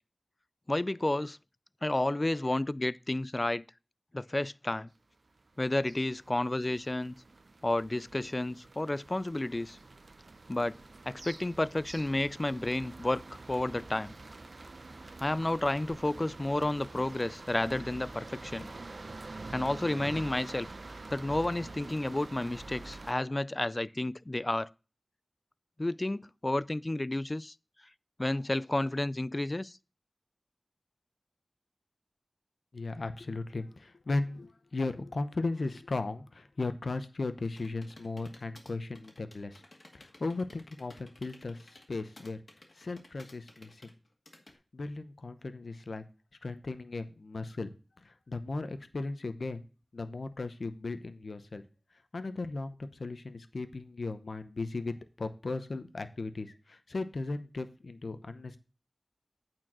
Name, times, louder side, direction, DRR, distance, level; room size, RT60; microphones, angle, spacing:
voice 1, 0.7-1.4 1.8-3.6 4.1-4.9 5.6-7.1 7.6-9.8 10.5-10.8 11.1-14.1 15.2-18.7 19.5-20.7 21.1-24.7 25.8-27.5 28.2-29.8, left 1 dB, 40° left, 0.4 m, -31 dB
sound 1, 5.4-23.1, right 3 dB, 75° right, 0.6 m, -47 dB
voice 2, 32.7-39.6 39.9-42.4 42.7-43.9 44.7-46.0 46.4-47.7 48.0-49.6 49.9-51.6 52.1-58.6, left 3 dB, 85° left, 0.8 m, -36 dB
sound 2, 37.4-44.5, left 2 dB, 60° left, 2.1 m, -55 dB
8.7 x 4.6 x 6.0 m
wide cardioid pair, 40°, 0 cm